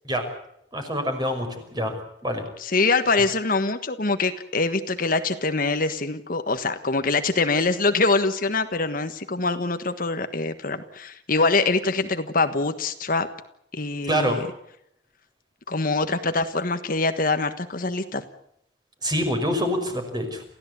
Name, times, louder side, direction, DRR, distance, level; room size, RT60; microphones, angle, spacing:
voice 1, 0.7-1.9 2.2-2.5 14.1-14.4 19.0-20.4, equal, 25° right, 5 dB, 5.7 m, -26 dB
voice 2, 2.6-13.3 13.7-14.4 15.7-18.2, left 3 dB, 50° left, 8 dB, 1.4 m, -24 dB
29.0 x 15.5 x 8.3 m, 0.75 s
head